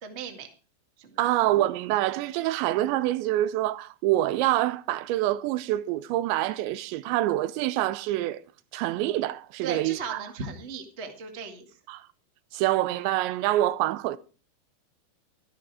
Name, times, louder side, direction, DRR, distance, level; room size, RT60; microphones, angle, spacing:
voice 1, 0.0-0.5 1.0-1.2 9.6-11.7, right 5 dB, 45° right, 0.8 m, -37 dB
voice 2, 1.2-8.4 8.7-10.2 11.9-12.0 12.5-14.2, right 15 dB, 85° right, 3.0 m, -26 dB
13.0 x 11.5 x 4.8 m
omnidirectional pair, 5.0 m